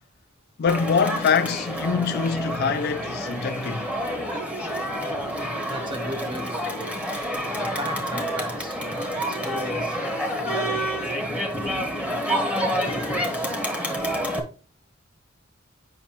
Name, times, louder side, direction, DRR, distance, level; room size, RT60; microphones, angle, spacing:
voice 1, 0.6-3.9, left 6 dB, 50° left, 0.4 m, -24 dB
Crowd, 0.7-14.4, equal, 5° right, 1.1 m, -28 dB
voice 2, 5.7-7.0 7.6-10.1 10.5-11.2 11.5-12.1, equal, 25° right, 0.8 m, -37 dB
7.2 x 5.5 x 2.9 m
head